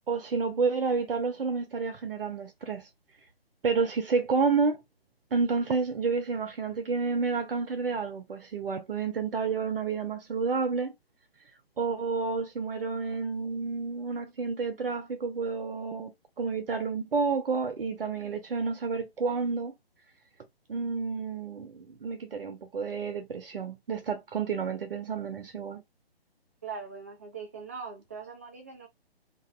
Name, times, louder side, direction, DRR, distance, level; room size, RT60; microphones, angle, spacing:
voice 1, 0.1-2.9 3.6-4.8 5.3-10.9 11.8-16.1 16.4-19.7 20.7-25.8, right 4 dB, 65° right, 0.7 m, -30 dB
voice 2, 26.6-28.9, right 5 dB, 15° right, 0.4 m, -41 dB
2.5 x 2.1 x 2.4 m
figure-of-eight pair, 140°, 31 cm